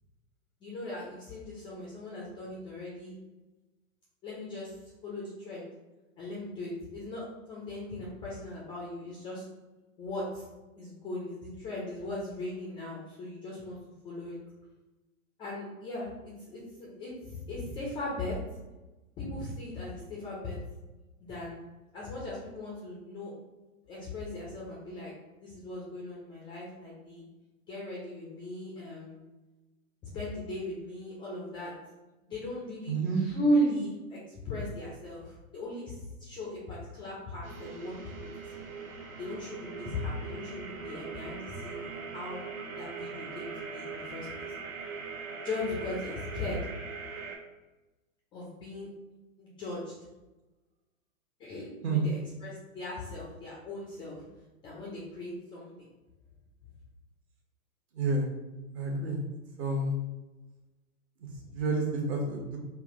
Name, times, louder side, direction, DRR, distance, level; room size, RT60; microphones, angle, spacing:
voice 1, 0.6-3.1 4.2-5.7 6.2-9.4 10.0-10.5 10.8-13.8 14.0-14.4 15.4-18.4 19.2-20.6 21.2-21.6 21.9-23.3 23.9-25.1 25.4-27.2 27.6-29.2 30.1-31.7 32.3-38.1 38.6-38.7 39.2-42.4 42.7-44.4 45.4-46.6 48.3-48.9 49.4-49.9 51.4-54.2 54.6-55.9 61.4-61.5, left 1 dB, 10° left, -5 dB, 0.4 m, -37 dB
voice 2, 32.9-33.2 51.8-52.0 57.9-58.3 58.7-59.2 59.6-59.9 61.5-62.6, right 3 dB, 45° right, -1 dB, 1.2 m, -29 dB
sound 1, 37.4-47.4, right 5 dB, 75° right, 1.1 m, -41 dB
3.6 x 2.2 x 3.6 m, 1.1 s
hypercardioid pair, 115°, 42 cm